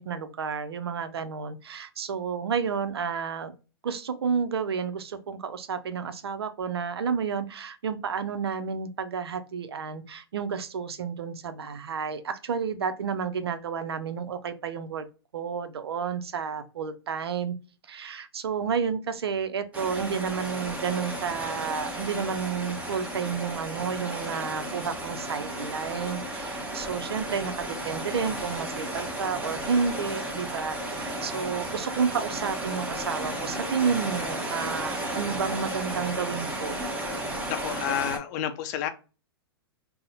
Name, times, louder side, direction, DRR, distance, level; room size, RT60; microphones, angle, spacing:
voice 1, 0.0-3.5 3.8-15.0 15.3-17.5 17.9-36.9, right 6 dB, 80° right, 0.5 m, -31 dB
sound 1, 19.7-38.2, right 1 dB, 10° right, 0.8 m, -34 dB
voice 2, 37.5-38.9, left 10 dB, 45° left, 0.5 m, -30 dB
2.6 x 2.0 x 3.9 m
hypercardioid pair, 115°, 13 cm